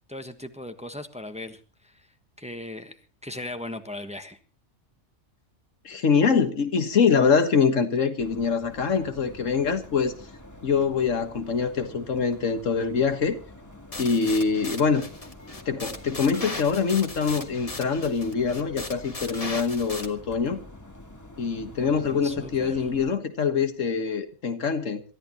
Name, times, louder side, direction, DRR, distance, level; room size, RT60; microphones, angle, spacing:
voice 1, 0.1-2.0 2.4-3.0 3.2-4.4 21.8-22.8, left 1 dB, 5° right, 7 dB, 1.2 m, -38 dB
voice 2, 5.9-10.1 10.6-13.4 14.0-15.1 15.7-20.6 21.4-25.0, left 5 dB, 85° left, 8 dB, 1.8 m, -24 dB
sound 1, 8.2-23.1, left 1 dB, 15° left, 1.6 m, -47 dB
sound 2, 13.9-20.1, left 3 dB, 30° left, 1.5 m, -38 dB
27.0 x 13.5 x 3.0 m, 0.33 s
omnidirectional pair, 1.3 m